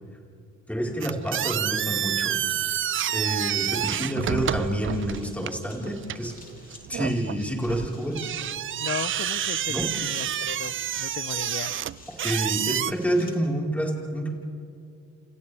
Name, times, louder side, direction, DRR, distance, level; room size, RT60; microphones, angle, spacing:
voice 1, 0.7-2.4 3.1-6.3 6.9-8.3 9.7-9.9 12.2-14.3, equal, 5° left, -2 dB, 4.6 m, -28 dB
sound 1, 1.0-12.9, right 10 dB, 45° right, 0.5 m, -29 dB
sound 2, 1.9-13.3, left 3 dB, 30° left, 3.5 m, -52 dB
voice 2, 8.8-11.7, left 8 dB, 45° left, 16 dB, 0.8 m, -36 dB
28.5 x 28.0 x 3.5 m, 2.5 s
cardioid pair, 90°, 30 cm